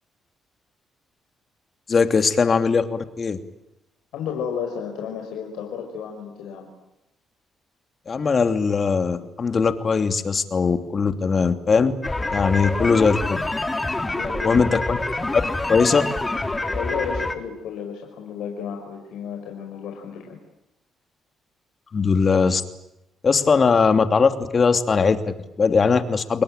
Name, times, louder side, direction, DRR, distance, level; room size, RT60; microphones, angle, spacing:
voice 1, 1.9-3.4 8.1-11.9 12.3-13.4 14.4-15.0 15.3-15.4 15.7-16.0 21.9-22.6 23.2-26.4, left 5 dB, 40° left, 8 dB, 2.8 m, -20 dB
voice 2, 4.1-6.7 14.1-15.0 16.7-20.4, left 7 dB, 85° left, 2 dB, 5.5 m, -32 dB
sound 1, 12.0-17.3, left 2 dB, 15° left, 3.2 m, -26 dB
29.5 x 21.0 x 9.1 m, 0.92 s
cardioid pair, 90°, 0 cm